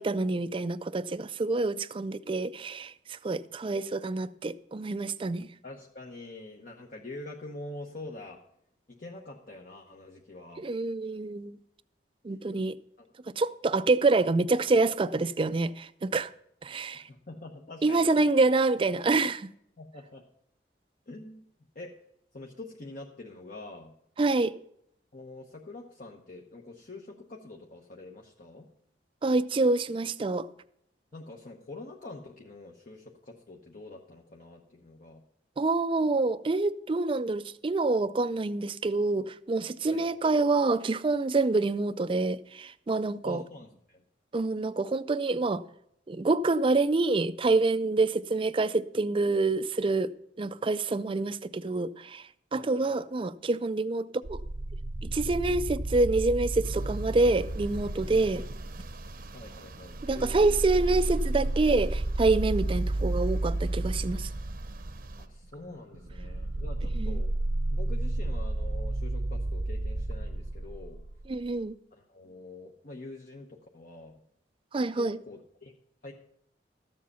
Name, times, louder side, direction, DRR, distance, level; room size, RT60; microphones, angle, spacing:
voice 1, 0.0-5.5 10.6-11.6 12.2-12.8 13.4-16.3 16.6-17.0 17.8-19.5 24.2-24.6 29.2-30.5 35.6-43.4 44.3-45.6 46.1-50.1 50.4-52.2 52.5-54.4 55.0-58.4 60.0-64.3 67.0-67.2 71.3-71.7 74.7-75.2, right 3 dB, 30° right, 0.4 m, -27 dB
voice 2, 5.6-8.4 8.9-10.7 13.0-13.1 16.9-18.1 19.8-20.2 21.1-21.4 21.7-21.9 22.3-23.9 25.1-28.7 31.1-35.2 39.9-40.0 43.2-44.0 52.5-53.1 59.3-60.6 65.2-67.3 67.7-71.0 71.9-74.2 75.0-75.7 76.0-76.1, left 2 dB, 50° left, 1.0 m, -45 dB
sound 1, 54.2-59.4 59.9-71.4, right 2 dB, 90° right, 0.9 m, -32 dB
sound 2, 56.6-65.3, right 2 dB, 55° right, 0.8 m, -47 dB
13.5 x 7.6 x 5.6 m
head